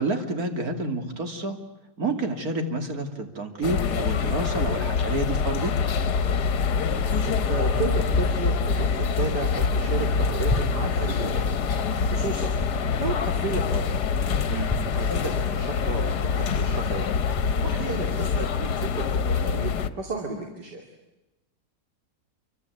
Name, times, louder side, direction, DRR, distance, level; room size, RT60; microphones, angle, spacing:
voice 1, 0.0-1.6 2.0-5.7 14.5-14.7, right 2 dB, 55° right, 5 dB, 3.1 m, -29 dB
sound 1, 3.6-19.9, left 5 dB, 70° left, 1.7 m, -25 dB
voice 2, 6.8-11.5 12.1-12.5 13.0-13.8 14.7-17.2 17.6-19.7 20.0-20.8, right 3 dB, 75° right, 3 dB, 3.3 m, -33 dB
sound 2, 10.4-10.7 12.5-12.8 14.6-15.1 17.3-17.6 18.7-18.8 19.4-19.6, left 3 dB, 15° left, 1.9 m, -32 dB
28.5 x 24.5 x 8.4 m, 0.97 s
omnidirectional pair, 1.8 m